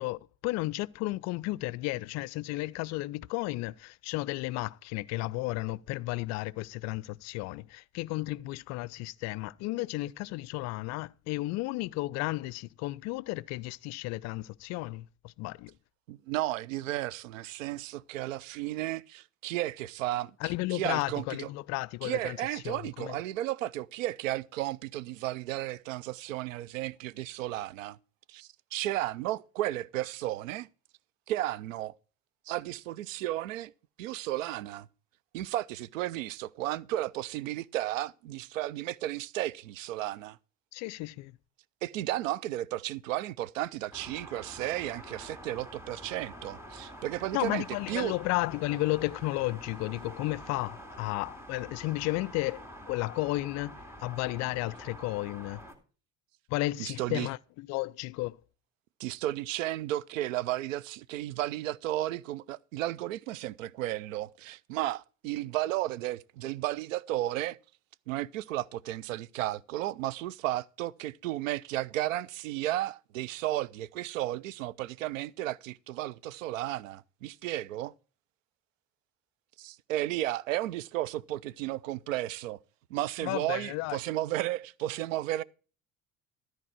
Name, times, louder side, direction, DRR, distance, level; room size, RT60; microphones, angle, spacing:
voice 1, 0.0-15.7 20.4-22.4 22.7-23.2 40.7-41.3 47.3-55.6 56.5-58.4 83.2-84.0, left 20 dB, 45° left, 0.4 m, -33 dB
voice 2, 16.1-20.3 20.7-21.5 22.0-28.0 28.3-30.7 31.3-31.9 32.5-33.7 34.0-34.9 35.3-40.4 41.8-48.1 56.8-57.3 59.0-67.6 68.1-77.9 79.6-82.6 82.9-85.4, right 15 dB, 70° right, 0.5 m, -33 dB
sound 1, 43.9-55.7, equal, 5° right, 2.4 m, -47 dB
13.0 x 4.6 x 7.2 m
figure-of-eight pair, 60°, 41 cm